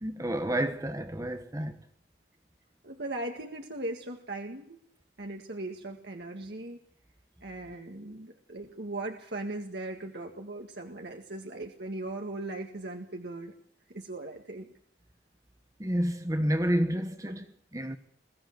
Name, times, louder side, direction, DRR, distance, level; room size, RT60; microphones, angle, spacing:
voice 1, 0.0-1.8 15.8-18.0, equal, 20° right, 1.1 m, -30 dB
voice 2, 2.8-4.8 5.2-6.8 7.4-13.5 13.9-14.7, right 2 dB, 70° right, 1.9 m, -38 dB
22.0 x 14.5 x 7.9 m
head